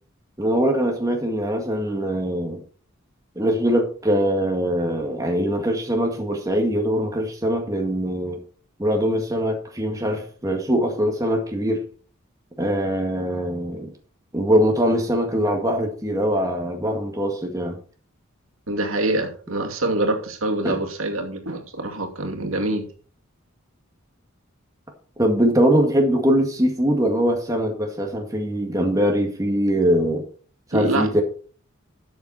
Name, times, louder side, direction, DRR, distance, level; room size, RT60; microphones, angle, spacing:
voice 1, 0.4-2.6 3.4-8.4 8.8-11.9 12.6-13.9 14.3-17.8 20.6-20.8 22.4-22.5 25.2-30.2 30.7-31.2, equal, 15° right, 1.9 m, -22 dB
voice 2, 18.7-22.9 30.7-31.2, right 2 dB, 85° right, 2.5 m, -25 dB
13.0 x 7.1 x 4.3 m
head